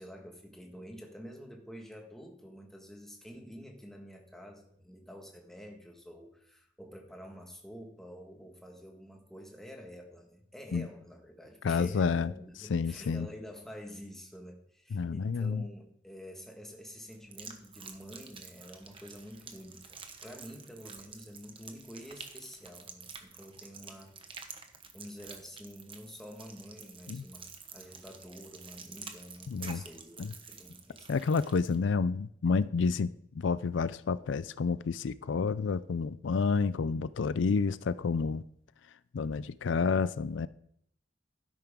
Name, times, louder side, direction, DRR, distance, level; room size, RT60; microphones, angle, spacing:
voice 1, 0.0-24.1 24.9-31.2, equal, ahead, 1 dB, 1.6 m, -48 dB
voice 2, 11.6-12.3 12.7-13.3 14.9-15.6 27.1-27.2 29.5-29.8 30.2-30.3 31.1-38.4 39.1-40.5, left 5 dB, 75° left, 16 dB, 0.4 m, -29 dB
sound 1, 17.1-31.8, right 5 dB, 30° right, 1.1 m, -49 dB
12.5 x 10.5 x 3.7 m, 0.70 s
head